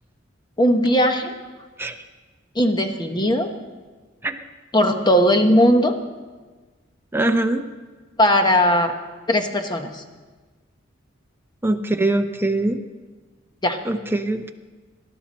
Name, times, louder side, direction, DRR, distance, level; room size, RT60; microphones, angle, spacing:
voice 1, 0.6-1.3 2.5-3.5 4.7-6.0 8.2-8.9 9.3-10.0 13.6-13.8, equal, 20° left, 6 dB, 1.1 m, -18 dB
voice 2, 7.1-7.6 11.6-12.8 13.8-14.5, right 2 dB, 10° right, 5 dB, 0.7 m, -22 dB
19.0 x 11.5 x 4.3 m, 1.3 s
head